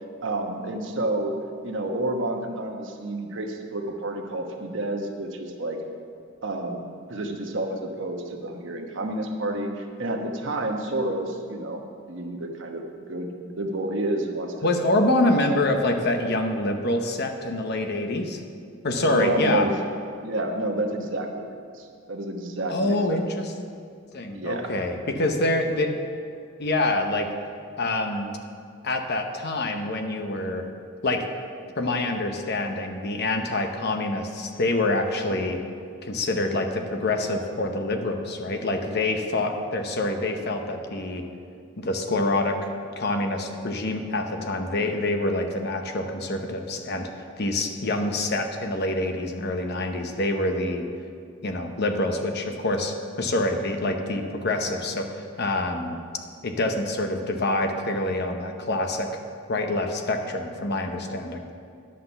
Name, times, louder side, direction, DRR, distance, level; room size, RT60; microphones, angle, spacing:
voice 1, 0.2-1.4 1.6-5.8 6.4-6.8 7.1-11.8 12.1-12.8 13.1-14.7 19.0-19.8 20.2-21.5 21.7-23.2 24.3-24.7, right 1 dB, 65° right, 3 dB, 1.0 m, -29 dB
voice 2, 14.6-18.4 18.8-19.7 22.7-23.5 24.1-25.9 26.6-27.3 27.8-28.3 28.8-30.7 31.0-31.2 31.8-35.6 36.0-41.2 41.8-42.7 43.0-47.1 47.4-50.9 51.4-56.0 56.4-59.1 59.5-61.4, left 2 dB, 55° left, 5 dB, 0.9 m, -26 dB
10.5 x 5.8 x 6.9 m, 2.3 s
head